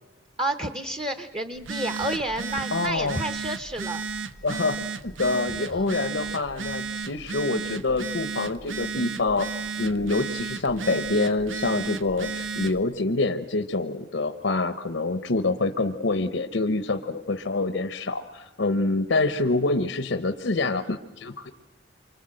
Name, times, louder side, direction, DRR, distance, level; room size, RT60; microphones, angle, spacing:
voice 1, 0.4-4.0 5.2-5.4 5.7-5.9, right 1 dB, 25° right, 9 dB, 0.9 m, -30 dB
Telephone, 1.5-12.8, right 5 dB, 80° right, 0.9 m, -34 dB
voice 2, 2.7-3.2 4.4-9.5 9.8-21.5, left 3 dB, 70° left, 10 dB, 0.9 m, -26 dB
28.5 x 25.0 x 7.7 m, 1.2 s
head